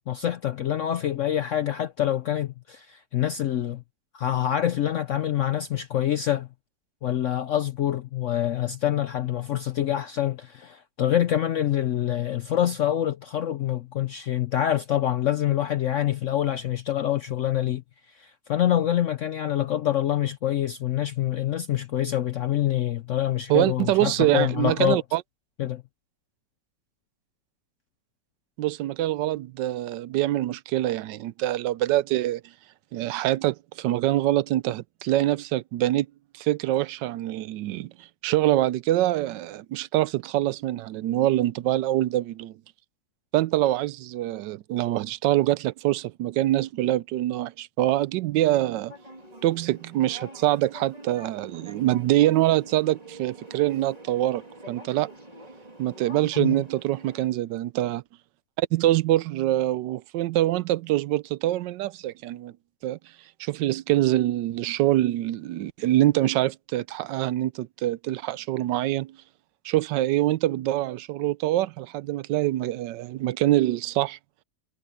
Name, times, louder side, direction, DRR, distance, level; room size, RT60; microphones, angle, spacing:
voice 1, 0.0-3.8 4.1-6.5 7.0-17.8 18.1-25.0 25.6-25.8 56.4-56.6, left 11 dB, 70° left, 0.7 m, -26 dB
voice 2, 23.5-25.2 28.6-32.4 32.9-36.1 36.3-37.9 38.2-42.5 43.3-48.9 49.4-55.1 55.8-58.0 58.6-62.5 62.8-63.0 63.4-69.2 69.6-74.2, right 15 dB, 80° right, 1.2 m, -24 dB
sound 1, 48.9-57.2, right 1 dB, 20° right, 3.1 m, -46 dB
omnidirectional pair, 1.9 m